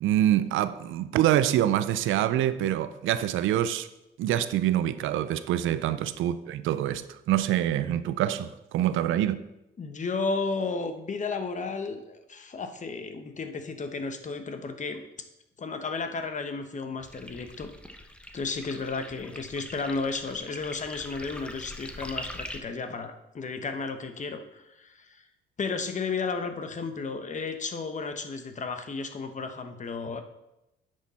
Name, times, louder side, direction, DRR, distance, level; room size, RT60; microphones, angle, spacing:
voice 1, 0.0-3.9 4.2-9.4, right 12 dB, 85° right, 0.5 m, -25 dB
voice 2, 9.8-15.0 15.6-17.7 18.3-25.2 25.6-30.2, left 4 dB, 40° left, 1.1 m, -33 dB
sound 1, 17.0-22.6, left 1 dB, 5° left, 0.9 m, -42 dB
9.8 x 6.5 x 4.2 m
cardioid pair, 90°, 20 cm